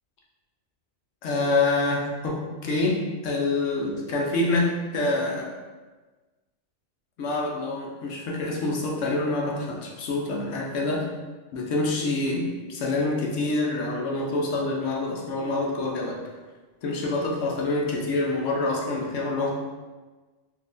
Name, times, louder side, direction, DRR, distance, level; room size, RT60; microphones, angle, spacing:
voice 1, 1.2-3.0 3.2-5.5 7.2-11.1 11.5-16.2 16.8-19.5, left 2 dB, 70° left, -1 dB, 1.0 m, -26 dB
3.7 x 2.8 x 2.5 m, 1.3 s
omnidirectional pair, 1.4 m